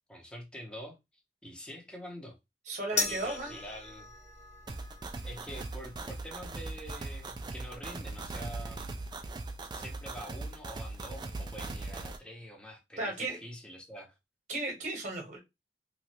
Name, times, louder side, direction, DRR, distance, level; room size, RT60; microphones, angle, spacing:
voice 1, 0.1-1.0 1.4-2.4 2.9-4.1 5.2-8.9 9.7-14.1, equal, 5° left, 0.7 m, -46 dB
voice 2, 2.7-3.6 13.0-13.4 14.5-15.4, right 2 dB, 45° right, 1.0 m, -35 dB
sound 1, 3.0-9.5, left 4 dB, 45° left, 0.9 m, -41 dB
sound 2, 4.7-12.2, right 2 dB, 25° right, 0.3 m, -40 dB
3.1 x 2.5 x 2.8 m
head